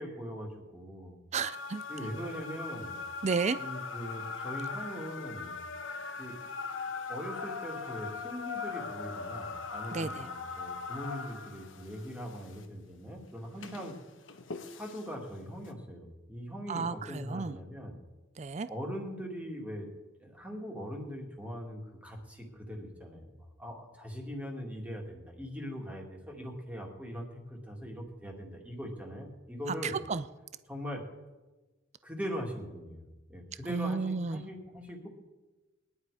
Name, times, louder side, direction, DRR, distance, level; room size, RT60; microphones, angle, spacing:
voice 1, 0.0-1.2 1.9-3.0 3.6-5.6 6.2-6.3 7.1-13.9 14.7-18.0 18.7-19.9 20.2-29.9 30.7-31.0 32.0-33.0 33.3-35.1, equal, 5° right, 0 dB, 2.2 m, -41 dB
voice 2, 1.3-1.8 3.2-3.6 9.9-10.3 16.7-17.5 18.4-18.7 29.8-30.2 33.7-34.4, right 4 dB, 35° right, 13 dB, 0.4 m, -32 dB
sound 1, 1.4-12.6 13.4-15.1 15.6-15.7, left 4 dB, 65° left, 1.1 m, -40 dB
20.5 x 10.5 x 4.9 m, 1.2 s
head